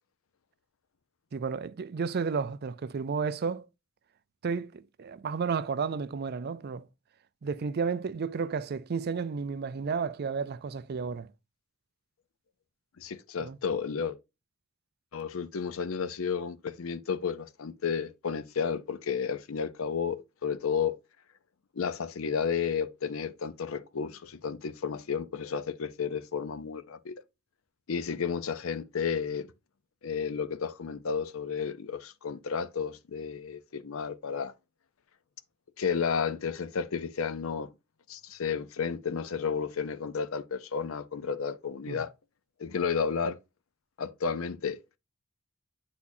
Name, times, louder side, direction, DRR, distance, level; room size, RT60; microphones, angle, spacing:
voice 1, 1.3-3.7 4.4-6.9 7.4-11.3 13.4-13.6 41.9-42.0, right 5 dB, 50° right, 0.4 m, -32 dB
voice 2, 13.0-14.2 15.1-21.0 21.8-27.2 27.9-29.5 30.0-34.5 35.8-37.7 38.1-42.1 42.6-43.4 44.0-44.8, left 6 dB, 75° left, 0.6 m, -32 dB
8.4 x 4.2 x 2.6 m
head